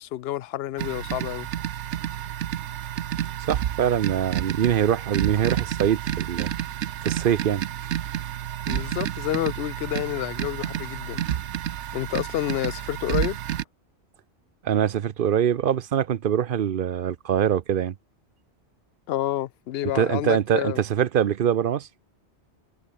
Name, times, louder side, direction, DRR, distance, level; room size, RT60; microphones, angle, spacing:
voice 1, 0.0-1.5 8.7-11.2 11.9-13.4 19.1-20.8, left 13 dB, 65° left, 0.8 m, -29 dB
sound 1, 0.8-13.6, right 11 dB, 80° right, 1.0 m, -30 dB
voice 2, 3.5-6.5 7.0-7.6 14.6-17.9 19.9-21.9, right 9 dB, 55° right, 0.7 m, -23 dB
omnidirectional pair, 1.2 m